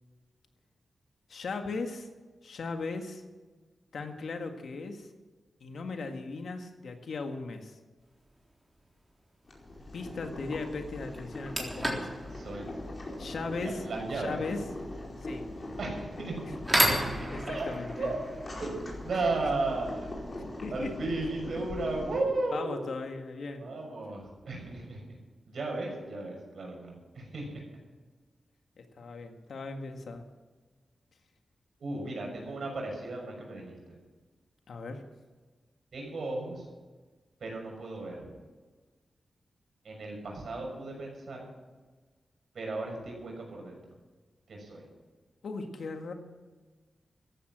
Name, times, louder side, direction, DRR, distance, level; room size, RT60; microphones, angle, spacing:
voice 1, 1.3-2.1 2.4-3.2 3.9-5.1 5.6-7.8 9.9-12.1 13.2-13.9 14.1-14.6 15.2-15.5 16.4-16.5 17.3-18.2 19.4-19.5 20.6-21.1 22.5-23.7 28.8-30.3 34.7-35.0 45.4-46.1, left 3 dB, 80° left, 5 dB, 1.8 m, -38 dB
sound 1, 8.2-8.5 10.5-10.6 11.1-19.9, right 1 dB, 15° right, 3.7 m, -34 dB
Boiling, 9.4-22.2, left 1 dB, 45° left, 4.7 m, -41 dB
voice 2, 12.3-12.7 13.6-14.4 15.8-16.3 17.2-17.6 18.0-18.2 18.6-18.7 19.0-20.2 20.7-22.7 23.6-25.0 25.5-27.6 31.8-33.7 35.9-36.6 37.4-38.2 39.8-41.5 42.5-43.8 44.5-44.8, right 2 dB, 75° right, 0 dB, 6.5 m, -35 dB
14.5 x 11.5 x 7.6 m, 1.3 s
cardioid pair, 75°, 0 cm